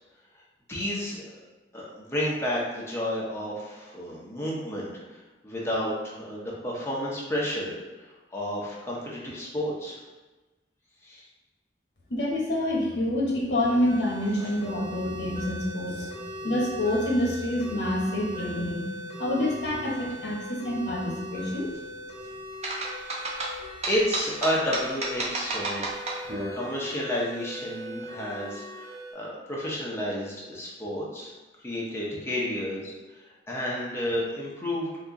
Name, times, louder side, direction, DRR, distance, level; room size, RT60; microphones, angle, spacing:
voice 1, 0.7-1.3 1.7-5.2 5.4-10.0 11.0-11.2 14.4-14.5 22.8-23.0 23.9-26.0 26.5-31.3 31.6-35.0, equal, 15° left, -5 dB, 0.7 m, -31 dB
voice 2, 12.1-16.1 16.4-18.8 19.2-21.7, left 1 dB, 70° left, -2 dB, 0.9 m, -27 dB
sound 1, 13.6-29.1, left 1 dB, 70° right, 1.4 m, -40 dB
sound 2, 22.6-26.5, right 2 dB, 40° right, 0.5 m, -31 dB
2.8 x 2.4 x 3.6 m, 1.1 s
head